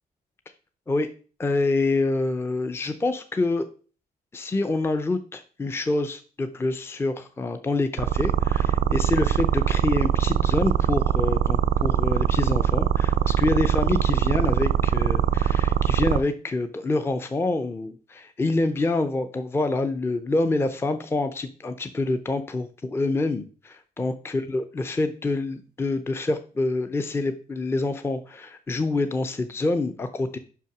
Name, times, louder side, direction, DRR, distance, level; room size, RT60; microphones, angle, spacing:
voice 1, 1.4-3.7 4.3-30.4, left 2 dB, 15° left, 9 dB, 0.5 m, -26 dB
sound 1, 8.0-16.2, right 10 dB, 90° right, 0.5 m, -22 dB
5.7 x 5.6 x 5.9 m, 0.39 s
cardioid pair, 145°, 16 cm